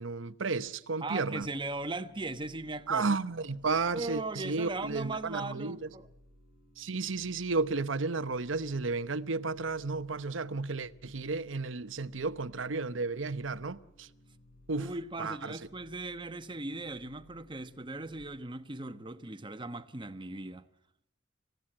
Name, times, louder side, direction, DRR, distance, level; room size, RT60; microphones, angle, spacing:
voice 1, 0.0-1.5 2.9-5.9 6.8-14.1 14.7-14.9 15.2-15.6, right 3 dB, 85° right, 0.9 m, -33 dB
voice 2, 1.0-3.1 3.9-6.1 14.8-20.7, right 2 dB, 25° right, 1.1 m, -38 dB
sound 1, 1.4-18.2, left 1 dB, 50° left, 6.2 m, -60 dB
27.0 x 16.0 x 8.8 m
head